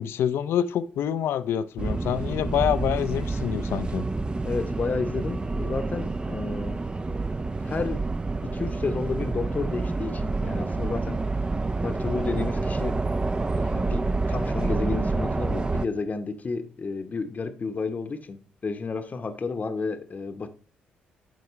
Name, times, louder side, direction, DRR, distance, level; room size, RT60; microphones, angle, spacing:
voice 1, 0.0-4.0, left 10 dB, 55° left, 0.5 m, -26 dB
sound 1, 1.8-15.9, right 3 dB, 20° right, 0.5 m, -28 dB
voice 2, 4.4-6.8 7.6-8.0 8.5-11.2 11.8-12.9 13.5-18.4 18.6-20.5, left 4 dB, 35° left, 0.9 m, -31 dB
12.0 x 4.7 x 3.1 m
figure-of-eight pair, 40°, 5 cm